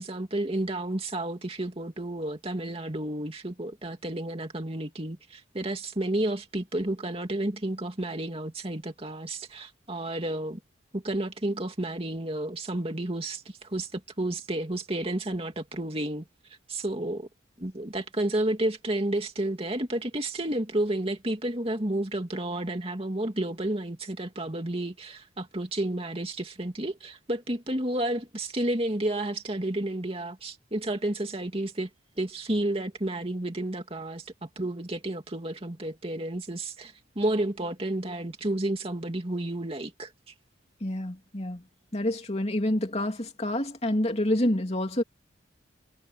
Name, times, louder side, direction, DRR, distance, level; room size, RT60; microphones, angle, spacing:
voice 1, 0.0-10.6 10.9-16.3 16.7-17.3 17.6-31.9 32.2-40.3, right 1 dB, 30° right, 2.5 m, -31 dB
voice 2, 40.8-41.6 41.9-45.0, left 1 dB, 35° left, 3.0 m, -28 dB
head